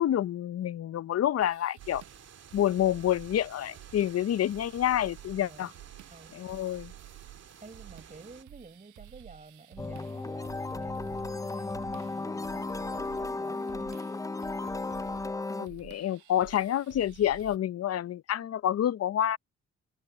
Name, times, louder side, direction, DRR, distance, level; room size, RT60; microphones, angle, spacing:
voice 1, 0.0-2.0 2.5-5.7 6.3-6.9 15.6-19.4, left 11 dB, 55° left, 0.7 m, -28 dB
sound 1, 1.4-17.6, right 14 dB, 90° right, 7.3 m, -52 dB
sound 2, 1.8-8.4, right 8 dB, 60° right, 2.5 m, -52 dB
voice 2, 5.4-5.7 6.1-6.4 7.6-14.0, right 3 dB, 25° right, 6.0 m, -51 dB
sound 3, 9.8-15.7, left 3 dB, 10° left, 0.4 m, -34 dB
cardioid pair, 65°, 29 cm